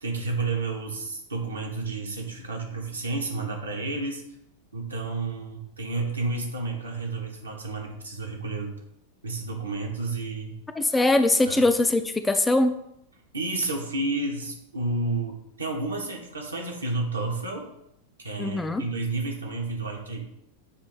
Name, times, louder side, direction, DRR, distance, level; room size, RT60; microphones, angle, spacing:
voice 1, 0.0-4.2 4.7-8.7 9.2-10.6 11.5-11.6 13.3-17.6 18.2-20.3, right 3 dB, 75° right, 1 dB, 1.2 m, -31 dB
voice 2, 10.8-12.7 18.4-18.8, left 2 dB, 10° left, 8 dB, 0.4 m, -22 dB
7.2 x 2.7 x 5.4 m, 0.79 s
figure-of-eight pair, 90°, 0 cm